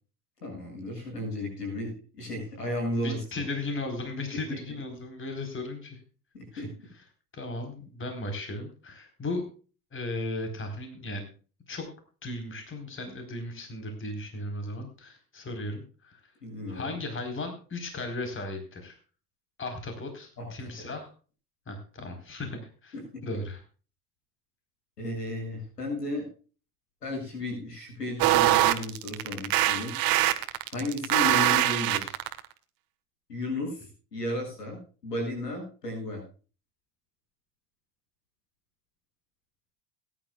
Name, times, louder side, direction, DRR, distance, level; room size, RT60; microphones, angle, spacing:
voice 1, 0.4-3.2 6.3-6.7 16.4-16.9 20.4-20.9 23.1-23.2 25.0-26.3 27.0-30.0 30.7-32.2 33.3-33.8 34.1-36.2, left 1 dB, 85° left, 2 dB, 7.9 m, -34 dB
voice 2, 3.0-6.0 6.5-6.7 7.3-9.4 9.9-11.3 11.7-11.9 12.2-16.2 16.7-18.9 19.6-21.1 21.7-22.9 23.2-23.6, left 2 dB, 25° left, 5 dB, 4.3 m, -36 dB
sound 1, 28.2-32.4, right 15 dB, 50° right, 1.5 m, -23 dB
21.5 x 11.0 x 2.4 m, 0.37 s
figure-of-eight pair, 70°, 46 cm